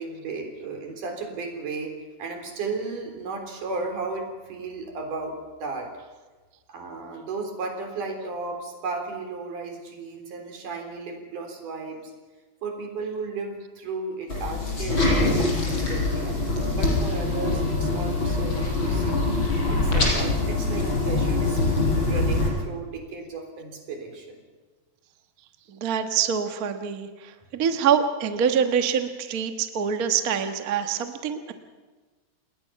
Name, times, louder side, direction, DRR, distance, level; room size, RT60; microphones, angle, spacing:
voice 1, 0.0-1.9 2.2-5.9 6.7-12.1 12.6-16.4 16.7-19.4 19.7-24.4, right 3 dB, 60° right, 3 dB, 5.1 m, -34 dB
sound 1, 14.3-22.5, left 2 dB, 30° left, 6.0 m, -24 dB
voice 2, 25.7-31.5, right 7 dB, 85° right, 7 dB, 0.8 m, -25 dB
28.0 x 20.0 x 5.9 m, 1.3 s
omnidirectional pair, 4.2 m